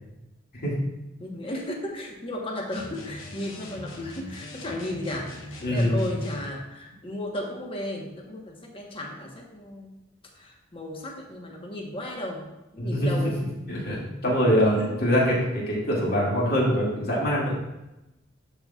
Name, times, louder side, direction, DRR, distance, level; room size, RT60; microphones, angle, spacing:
voice 1, 1.2-9.9 10.3-13.4 14.8-15.0, left 1 dB, 30° left, 0 dB, 1.1 m, -35 dB
sound 1, 2.7-6.6, left 1 dB, 85° left, 1.0 m, -40 dB
voice 2, 5.6-6.0 12.8-13.3 13.7-17.5, equal, 50° left, -5 dB, 2.2 m, -24 dB
11.0 x 4.3 x 2.4 m, 0.95 s
head